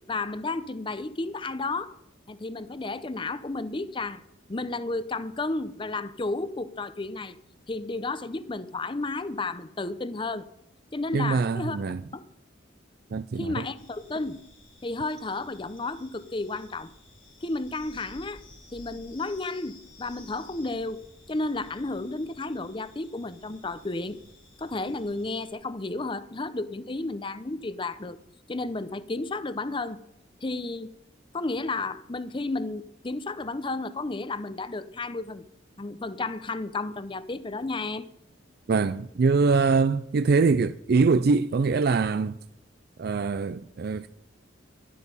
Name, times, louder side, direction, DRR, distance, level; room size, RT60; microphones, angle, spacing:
voice 1, 0.1-1.9 2.3-4.2 4.5-7.4 7.7-10.5 10.9-11.8 12.1-12.2 13.4-14.4 14.8-16.9 17.4-18.4 18.7-21.0 21.3-24.2 24.6-28.2 28.5-30.0 30.4-30.9 31.3-35.4 35.8-38.1, left 3 dB, 25° left, 0.6 m, -32 dB
voice 2, 11.1-12.0 13.1-13.6 38.7-42.4 43.0-44.1, right 4 dB, 55° right, 0.4 m, -23 dB
sound 1, 13.8-25.5, left 2 dB, 85° left, 4.1 m, -54 dB
12.0 x 12.0 x 5.5 m
head